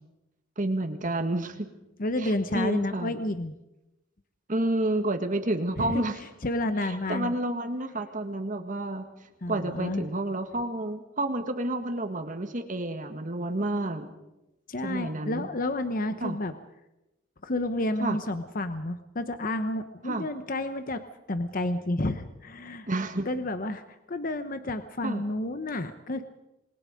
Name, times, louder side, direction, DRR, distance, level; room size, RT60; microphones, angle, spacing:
voice 1, 0.6-1.7 2.2-3.1 4.5-6.2 6.8-9.1 9.5-14.1 14.8-15.5 16.2-16.4 18.0-18.2 20.0-20.3 22.9-23.3 25.0-25.2, right 1 dB, 40° right, 6 dB, 1.6 m, -30 dB
voice 2, 2.0-3.5 5.8-6.0 6.4-7.3 9.4-10.1 14.7-16.5 17.4-21.0 21.3-22.9 23.3-23.8 24.1-26.2, left 1 dB, 40° left, 9 dB, 0.9 m, -30 dB
27.5 x 21.0 x 5.2 m, 0.95 s
head